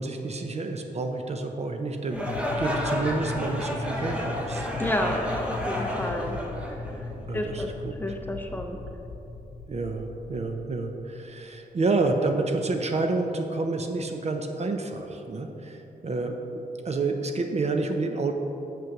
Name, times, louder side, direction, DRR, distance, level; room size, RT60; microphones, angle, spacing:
voice 1, 0.0-4.9 7.2-7.9 9.7-18.3, right 3 dB, 40° right, 5 dB, 0.7 m, -29 dB
sound 1, 2.1-10.7, left 3 dB, 80° left, 0.9 m, -37 dB
sound 2, 2.1-7.3, left 1 dB, 5° right, 1.1 m, -31 dB
voice 2, 4.8-6.4 6.7-7.7 8.0-8.8, left 1 dB, 10° left, 3 dB, 0.8 m, -31 dB
6.7 x 6.4 x 6.0 m, 3.0 s
cardioid pair, 100°, 16 cm